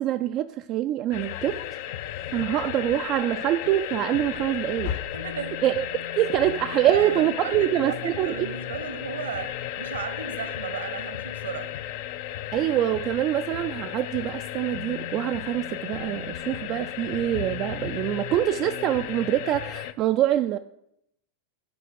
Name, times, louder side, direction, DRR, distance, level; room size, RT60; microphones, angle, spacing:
voice 1, 0.0-1.6 2.3-4.9 5.6-5.8 6.2-8.5 12.5-20.6, right 12 dB, 35° right, 0.4 m, -25 dB
sound 1, 1.1-19.9, left 11 dB, 50° left, 0.5 m, -34 dB
voice 2, 5.1-5.6 6.9-11.8, right 6 dB, 65° right, 1.0 m, -35 dB
9.5 x 4.9 x 7.6 m
figure-of-eight pair, 90°, 0 cm